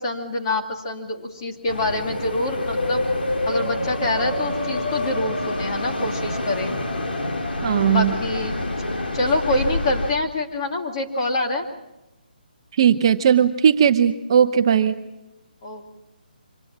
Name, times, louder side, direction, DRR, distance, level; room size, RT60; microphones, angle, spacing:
voice 1, 0.0-3.1 3.5-6.8 7.8-8.6 9.1-11.6 15.6-15.8, left 2 dB, 30° left, 2 dB, 2.6 m, -25 dB
sound 1, 1.7-10.1, left 1 dB, 85° left, 2.9 m, -27 dB
voice 2, 7.6-8.1 12.8-14.9, right 8 dB, 30° right, 8 dB, 0.8 m, -17 dB
25.0 x 18.5 x 7.3 m, 0.95 s
hypercardioid pair, 165°, 5 cm